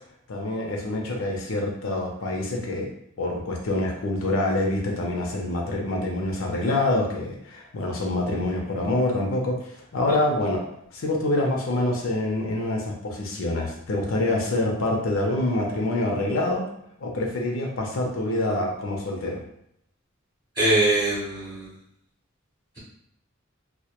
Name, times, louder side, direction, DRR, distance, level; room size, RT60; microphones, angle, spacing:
voice 1, 0.3-2.9 3.2-10.6 10.9-16.7 17.0-19.4, left 2 dB, 75° left, 0 dB, 0.5 m, -26 dB
voice 2, 20.6-21.7, right 1 dB, 20° right, -9 dB, 0.7 m, -22 dB
2.1 x 2.1 x 2.8 m, 0.73 s
head